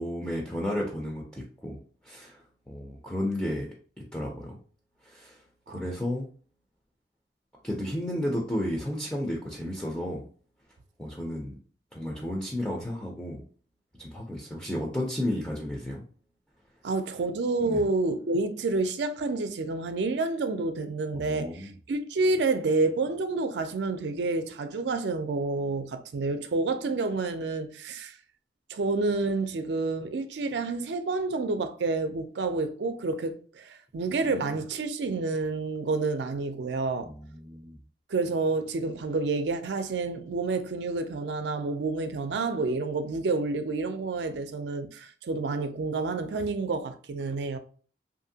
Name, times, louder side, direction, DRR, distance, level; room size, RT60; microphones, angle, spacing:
voice 1, 0.0-2.4 2.7-3.7 4.1-4.6 5.0-5.4 5.7-6.2 7.6-10.2 11.0-11.6 11.9-13.4 14.0-16.0 17.7-17.8 21.1-21.7 34.2-34.6 37.0-37.8, left 1 dB, 5° left, 0.4 m, -33 dB
voice 2, 16.8-28.2 28.7-37.1 38.1-47.6, right 3 dB, 75° right, 0.4 m, -29 dB
2.8 x 2.5 x 2.7 m
head